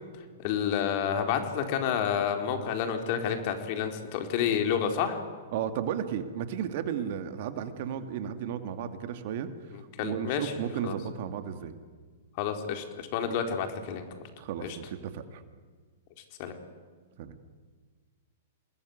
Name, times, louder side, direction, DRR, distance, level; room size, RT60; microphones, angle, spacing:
voice 1, 0.4-5.2 9.7-10.5 10.8-10.9 12.4-14.1 14.6-14.8 16.4-16.5, left 8 dB, 50° left, 5 dB, 4.2 m, -29 dB
voice 2, 5.5-9.5 10.0-11.7 14.4-15.4 17.2-17.3, right 9 dB, 55° right, 9 dB, 2.4 m, -34 dB
28.0 x 20.0 x 9.6 m, 1.5 s
hypercardioid pair, 110°, 0 cm